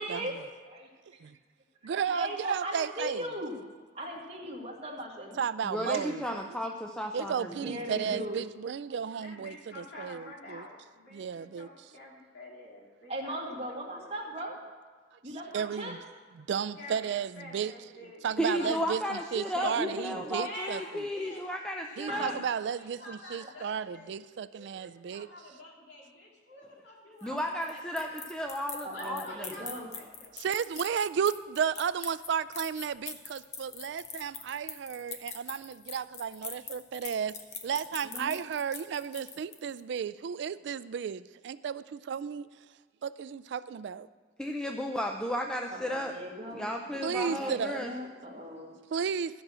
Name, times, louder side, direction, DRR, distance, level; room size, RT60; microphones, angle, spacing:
voice 1, 0.0-1.2 2.0-3.6 3.9-5.4 7.5-8.4 13.1-14.6 15.2-15.9 19.6-20.4 22.1-22.4 28.8-29.9 38.0-38.3 45.7-48.7, right 1 dB, 35° right, -1 dB, 1.9 m, -38 dB
voice 2, 1.8-3.2 5.4-6.2 7.1-10.7 11.1-11.9 15.5-16.0 16.3-17.7 18.2-20.8 22.0-25.3 30.3-37.4 37.6-42.5 43.0-44.1 47.0-47.8 48.9-49.4, right 7 dB, 70° right, 16 dB, 0.3 m, -33 dB
voice 3, 5.6-7.7 18.4-22.4 27.2-29.5 44.4-46.1 46.5-47.9, equal, 5° left, 2 dB, 0.5 m, -34 dB
voice 4, 9.2-14.1 16.8-17.0 17.3-18.3 18.5-18.9 20.4-21.4 21.9-22.4 22.8-24.1 24.5-28.1 28.9-30.4, left 1 dB, 65° left, -3 dB, 3.0 m, -47 dB
sound 1, 27.2-39.8, left 6 dB, 40° left, 1.0 m, -43 dB
13.5 x 6.1 x 7.5 m, 1.4 s
head